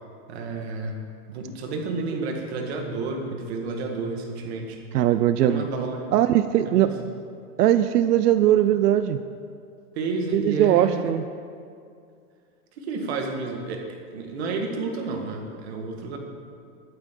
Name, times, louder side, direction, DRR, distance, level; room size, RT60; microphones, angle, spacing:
voice 1, 0.3-0.9 1.3-4.8 5.3-6.1 6.7-6.9 10.0-11.1 12.8-16.2, right 3 dB, 45° right, 3 dB, 1.8 m, -31 dB
voice 2, 4.9-5.7 6.1-6.9 7.6-9.2 10.3-11.3, right 12 dB, 85° right, 11 dB, 0.7 m, -20 dB
20.5 x 8.8 x 3.8 m, 2.4 s
supercardioid pair, 175°, 46 cm